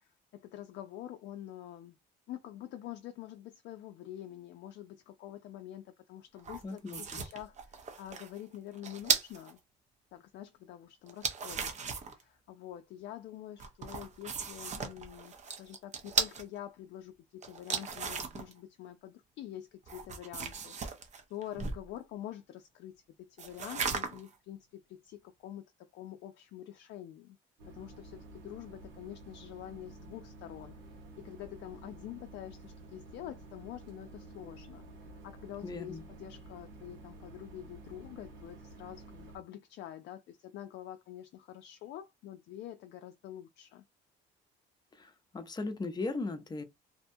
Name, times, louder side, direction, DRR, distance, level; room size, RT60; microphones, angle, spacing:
voice 1, 0.0-1.9 2.3-9.6 10.1-21.0 21.3-27.4 27.7-34.8 35.2-43.8, left 12 dB, 65° left, 0.4 m, -46 dB
sound 1, 6.4-9.5 11.1-12.2 13.6-16.4 17.4-18.5 19.9-21.9 23.4-24.3, right 5 dB, 40° right, 0.7 m, -36 dB
voice 2, 6.6-7.2 35.6-36.0 44.9-46.6, left 3 dB, 20° left, 0.7 m, -38 dB
sound 2, 27.6-39.4, right 2 dB, 90° right, 1.0 m, -51 dB
2.7 x 2.1 x 2.6 m
cardioid pair, 95°, 19 cm